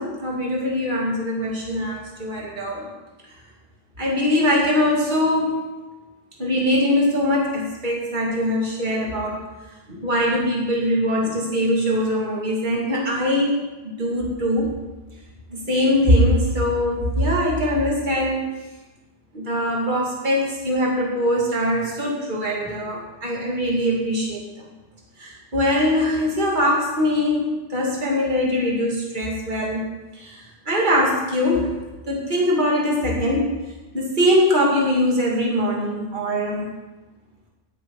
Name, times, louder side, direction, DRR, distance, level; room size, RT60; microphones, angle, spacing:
voice 1, 0.0-2.9 4.0-5.6 6.4-9.4 9.9-13.5 14.0-14.7 15.5-18.5 19.3-24.4 25.2-29.9 30.1-31.7 32.1-33.5 33.9-36.7, left 1 dB, 50° right, -3 dB, 2.7 m, -22 dB
18.5 x 8.5 x 4.8 m, 1.1 s
omnidirectional pair, 1.1 m